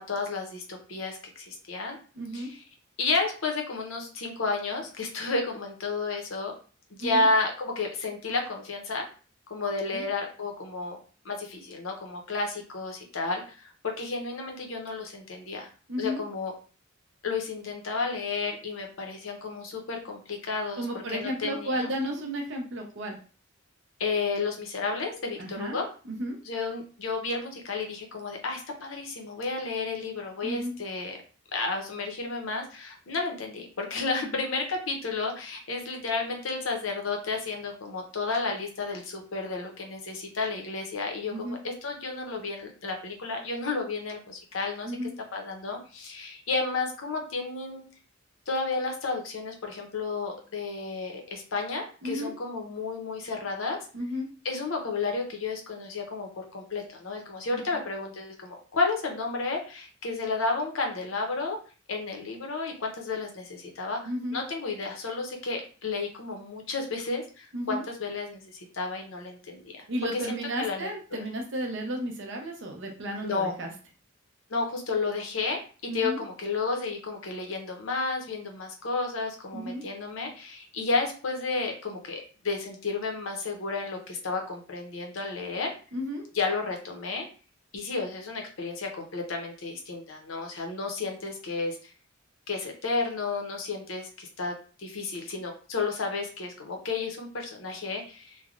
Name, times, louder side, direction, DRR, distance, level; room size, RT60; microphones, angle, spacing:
voice 1, 0.0-2.0 2.3-2.5 3.0-6.5 6.9-9.1 9.5-11.0 11.2-15.7 16.0-16.5 17.2-21.9 24.0-25.9 26.4-31.2 31.5-44.9 45.3-47.8 48.5-53.8 54.4-61.6 61.9-64.0 64.3-69.9 70.1-71.2 73.2-73.5 74.5-85.7 86.3-87.3 87.7-91.9 92.5-94.5 94.8-98.4, left 3 dB, 80° left, 2 dB, 0.7 m, -32 dB
voice 2, 2.2-2.5 7.0-7.3 9.9-10.0 15.9-16.2 20.8-23.2 25.4-25.8 26.0-26.4 30.4-30.7 34.3-34.4 41.3-41.6 44.8-45.1 52.0-52.3 53.9-54.3 57.5-57.6 64.0-64.4 67.5-67.8 69.9-73.7 75.9-76.2 79.5-79.8 85.9-86.2, equal, 65° right, 2 dB, 0.7 m, -33 dB
3.3 x 2.2 x 2.4 m, 0.38 s
head